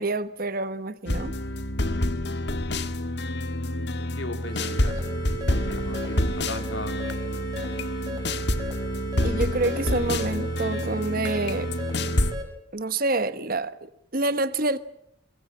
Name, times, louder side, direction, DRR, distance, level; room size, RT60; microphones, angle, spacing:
voice 1, 0.0-1.3 9.2-11.7 12.7-14.8, right 2 dB, 45° right, 1.1 m, -27 dB
sound 1, 1.1-12.3, left 1 dB, 60° left, 1.7 m, -28 dB
voice 2, 4.1-5.0 5.5-7.0, left 2 dB, 80° left, 3.2 m, -37 dB
sound 2, 4.5-12.4, right 4 dB, 20° right, 6.3 m, -36 dB
24.0 x 22.0 x 7.5 m
head